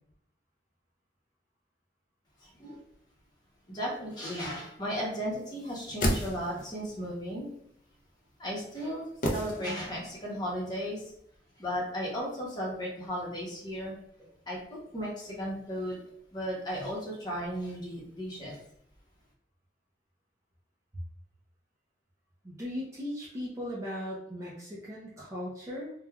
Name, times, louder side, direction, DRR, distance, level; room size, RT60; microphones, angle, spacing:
voice 1, 2.4-2.8 3.7-7.5 8.4-11.1 11.6-13.9 14.5-16.0 16.3-18.6, equal, 25° left, -5 dB, 0.8 m, -35 dB
sound 1, 5.6-6.8 9.2-10.1 10.4-10.5, equal, 45° left, 0.5 m, -32 dB
voice 2, 22.4-25.9, left 1 dB, 15° right, -6 dB, 0.5 m, -38 dB
3.1 x 2.2 x 2.3 m, 0.70 s
head